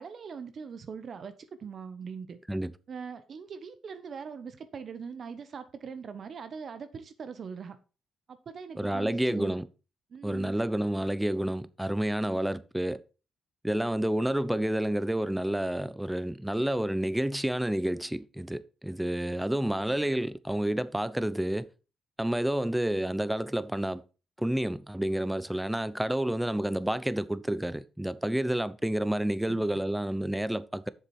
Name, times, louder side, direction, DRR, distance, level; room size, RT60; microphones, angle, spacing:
voice 1, 0.0-1.3 1.6-2.4 2.9-7.8 8.3-9.6 10.1-10.5 29.5-29.6, right 6 dB, 50° right, 0.9 m, -41 dB
voice 2, 8.8-9.7 10.2-13.0 13.6-21.7 22.2-24.0 24.4-30.9, right 1 dB, 5° right, 0.6 m, -29 dB
7.5 x 6.7 x 4.4 m
cardioid pair, 90°, 0 cm